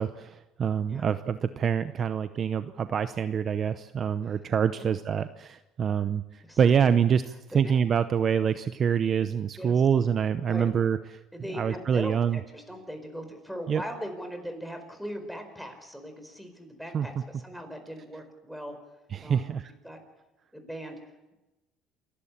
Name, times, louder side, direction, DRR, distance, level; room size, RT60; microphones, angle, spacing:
voice 1, 0.0-7.2 7.5-11.0 11.5-12.4 13.7-13.8 16.9-17.1 19.1-19.7, right 7 dB, 40° right, 12 dB, 0.7 m, -26 dB
voice 2, 6.4-6.9 7.5-7.7 9.6-9.8 10.5-10.7 11.3-18.8 19.2-19.5 19.8-20.0 20.5-21.0, equal, ahead, 6 dB, 4.8 m, -40 dB
28.0 x 12.0 x 8.7 m, 1.0 s
supercardioid pair, 105°, 0 cm